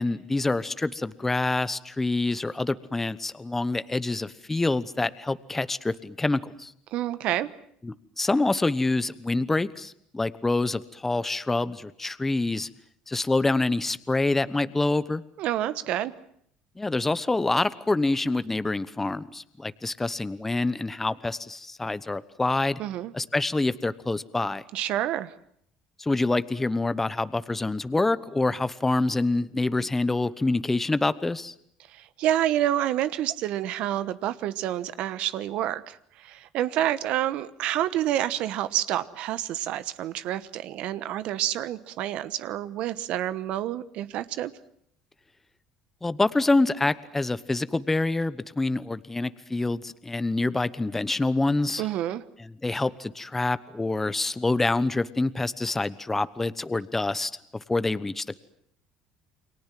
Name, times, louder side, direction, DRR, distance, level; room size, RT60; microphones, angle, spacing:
voice 1, 0.0-6.7 7.8-12.7 13.1-15.2 16.8-22.8 23.1-24.6 26.0-31.5 46.0-51.9 52.4-57.3 57.7-58.4, left 2 dB, 15° left, 15 dB, 1.0 m, -26 dB
voice 2, 6.9-7.5 15.4-16.1 22.8-23.1 24.7-25.3 31.9-44.5 51.8-52.2, right 12 dB, 65° right, 15 dB, 1.1 m, -28 dB
29.5 x 23.0 x 7.6 m, 0.69 s
cardioid pair, 105°, 2 cm